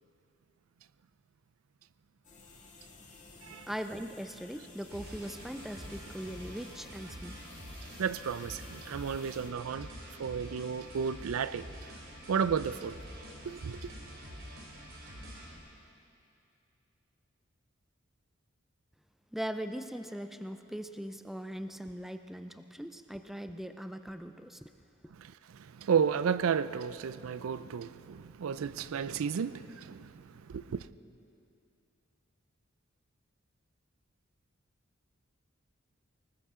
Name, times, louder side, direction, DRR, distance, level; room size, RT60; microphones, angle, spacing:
sound 1, 2.2-9.5, left 3 dB, 35° left, 2.1 m, -54 dB
voice 1, 3.7-7.4 19.3-24.7, equal, ahead, 0.4 m, -40 dB
sound 2, 4.9-15.6, equal, 65° right, 2.9 m, -47 dB
voice 2, 8.0-9.9 10.2-11.6 12.3-13.0 13.4-13.9 25.2-25.3 25.7-30.2 30.5-30.9, right 7 dB, 85° right, 0.4 m, -32 dB
20.0 x 19.0 x 3.7 m
head